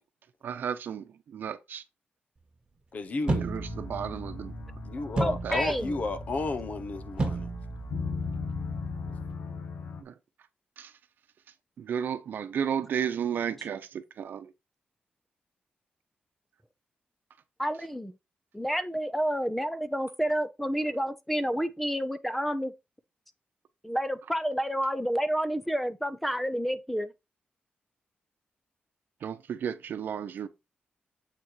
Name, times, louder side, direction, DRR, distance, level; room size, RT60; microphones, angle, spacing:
voice 1, 0.4-1.8 3.4-4.5 5.4-5.7 10.0-10.1 10.8-10.9 11.8-14.5 29.2-30.5, right 8 dB, 75° right, 0.9 m, -33 dB
voice 2, 2.9-3.5 4.9-7.5, left 3 dB, 45° left, 1.0 m, -32 dB
sound 1, 3.3-9.3, right 2 dB, 25° right, 1.4 m, -35 dB
sound 2, 3.5-10.0, left 5 dB, 80° left, 1.2 m, -38 dB
voice 3, 5.2-6.0 17.6-18.1 18.5-22.7 23.8-27.1, equal, 5° left, 0.7 m, -29 dB
7.6 x 4.3 x 4.7 m
wide cardioid pair, 150°, 3 cm